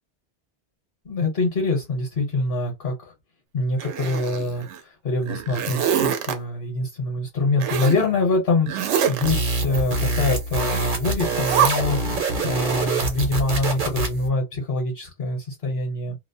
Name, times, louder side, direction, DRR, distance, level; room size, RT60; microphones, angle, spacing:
voice 1, 1.0-3.1 3.5-12.0 12.4-16.2, left 2 dB, 55° left, 1.2 m, -25 dB
Zipper (clothing), 3.8-4.8 5.2-6.3 7.6-8.0 8.7-9.3 10.6-10.9 11.3-11.7, right 9 dB, 85° right, 0.9 m, -24 dB
sound 1, 9.2-14.3, right 2 dB, 55° right, 0.8 m, -25 dB
2.5 x 2.0 x 2.6 m
omnidirectional pair, 1.1 m